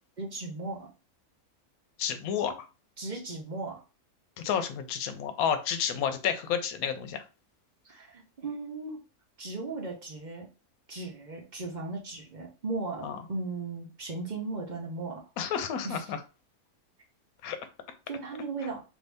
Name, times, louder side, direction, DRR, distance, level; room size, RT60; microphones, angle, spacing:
voice 1, 0.2-0.9 3.0-3.8 7.8-9.0 9.4-10.5 10.9-15.2 15.8-16.0 18.1-18.8, right 3 dB, 40° right, -1 dB, 0.7 m, -37 dB
voice 2, 2.0-2.7 4.4-7.2 13.0-13.2 15.4-16.2 17.4-17.6, left 8 dB, 80° left, 9 dB, 1.0 m, -30 dB
2.7 x 2.7 x 3.3 m, 0.31 s
omnidirectional pair, 1.5 m